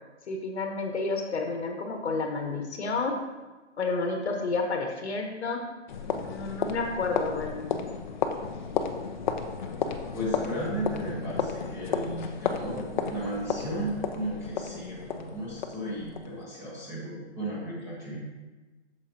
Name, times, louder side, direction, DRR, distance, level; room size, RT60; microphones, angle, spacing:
voice 1, 0.3-3.1 3.8-5.6 6.2-7.9, left 3 dB, 65° left, 3 dB, 1.2 m, -30 dB
sound 1, 5.9-16.4, left 6 dB, 40° left, 0.6 m, -33 dB
voice 2, 10.1-18.2, right 1 dB, 10° right, -7 dB, 1.0 m, -34 dB
8.6 x 6.8 x 2.9 m, 1.2 s
hypercardioid pair, 145°, 35 cm